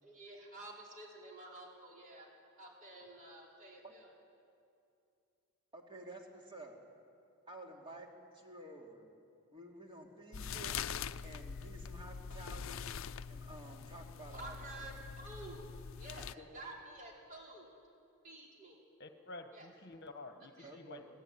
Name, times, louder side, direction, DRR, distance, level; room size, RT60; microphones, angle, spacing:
voice 1, 0.0-2.3 2.6-4.1 14.3-15.7 16.0-17.7 18.2-18.8 19.5-19.7 20.6-20.8, right 2 dB, 40° right, -2 dB, 4.7 m, -51 dB
voice 2, 5.7-6.8 7.5-8.1 8.3-9.1 9.5-10.8 11.2-15.0 16.4-16.5 20.6-21.1, right 1 dB, 25° right, 0 dB, 2.8 m, -52 dB
sound 1, 10.3-16.3, left 7 dB, 65° left, 0.5 m, -44 dB
voice 3, 19.0-21.0, left 2 dB, 50° left, 7 dB, 1.2 m, -50 dB
23.0 x 16.0 x 10.0 m, 2.6 s
head